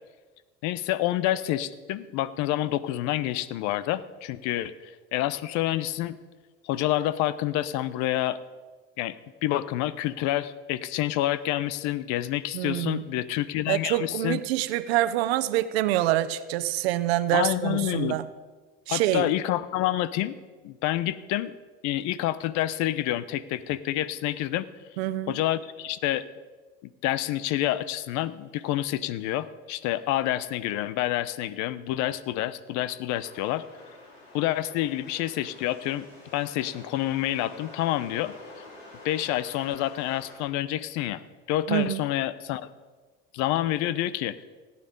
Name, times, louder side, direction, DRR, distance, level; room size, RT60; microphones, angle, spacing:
voice 1, 0.6-6.2 6.6-8.4 9.0-9.2 9.4-14.4 17.3-18.2 18.9-20.4 20.6-21.5 21.8-24.7 25.3-26.2 26.8-33.7 34.3-36.1 36.3-38.3 39.0-41.2 41.5-42.7 43.3-44.4, left 14 dB, 70° left, 17 dB, 0.8 m, -28 dB
voice 2, 12.5-13.0 13.7-18.3 18.9-19.3 25.0-25.4 41.7-42.0, right 14 dB, 85° right, 14 dB, 0.8 m, -26 dB
sound 1, 33.1-40.4, left 2 dB, 90° left, 5.2 m, -48 dB
17.5 x 9.3 x 5.3 m, 1.4 s
supercardioid pair, 95°, 30 cm